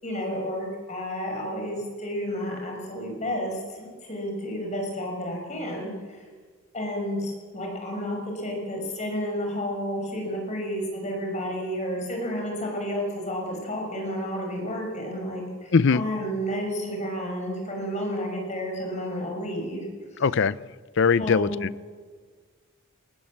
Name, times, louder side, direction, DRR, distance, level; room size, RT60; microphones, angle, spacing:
voice 1, 0.0-6.2 6.7-20.4 21.2-21.6, equal, 35° left, 1 dB, 5.5 m, -31 dB
voice 2, 20.2-20.5 21.0-21.5, left 5 dB, 60° left, 19 dB, 0.5 m, -20 dB
21.5 x 19.0 x 7.4 m, 1.5 s
head